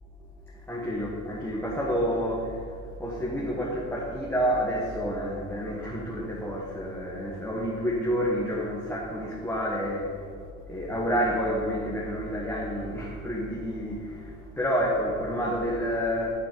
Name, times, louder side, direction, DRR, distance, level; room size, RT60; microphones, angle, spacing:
voice 1, 0.5-16.3, equal, 10° left, -5 dB, 1.3 m, -29 dB
10.5 x 4.3 x 4.6 m, 2.1 s
cardioid pair, 90°, 30 cm